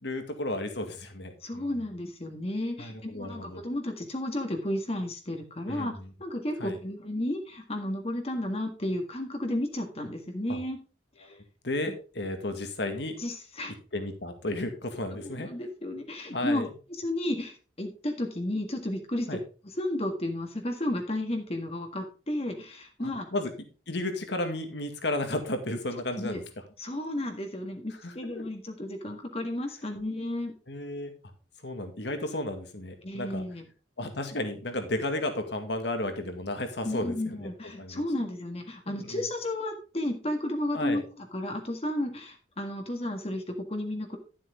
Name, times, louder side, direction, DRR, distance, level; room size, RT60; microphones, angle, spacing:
voice 1, 0.0-1.8 2.8-3.6 5.7-6.1 6.6-6.8 10.5-10.6 11.2-13.2 13.9-15.5 16.3-16.7 19.3-19.4 23.0-23.5 23.9-26.4 28.0-28.4 30.7-31.1 31.6-33.4 34.0-38.0 38.9-39.2 40.7-41.0, left 1 dB, 60° left, 6 dB, 2.1 m, -33 dB
voice 2, 1.4-5.9 6.2-10.8 11.2-11.4 11.9-12.0 13.2-13.7 15.1-16.7 17.0-19.3 19.6-23.3 26.2-26.4 26.8-30.5 33.0-33.7 36.8-44.2, left 1 dB, 30° left, 4 dB, 1.7 m, -33 dB
12.5 x 7.5 x 3.6 m, 0.36 s
head